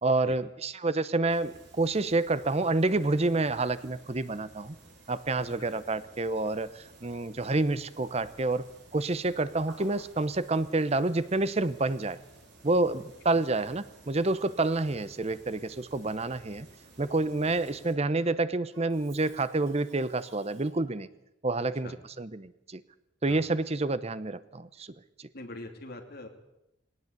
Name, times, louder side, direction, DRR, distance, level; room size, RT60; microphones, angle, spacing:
voice 1, 0.0-4.8 5.1-8.6 8.9-12.2 12.6-16.7 17.0-21.1 21.4-22.8 23.2-24.9 25.2-25.3, right 2 dB, 35° right, 15 dB, 0.8 m, -28 dB
sound 1, 1.3-17.9, right 2 dB, 60° right, 4.6 m, -55 dB
Cough, 18.2-21.1, right 4 dB, 90° right, 5.2 m, -58 dB
voice 2, 25.3-26.3, left 2 dB, 55° left, 3 dB, 2.9 m, -43 dB
19.0 x 18.0 x 8.2 m, 0.88 s
head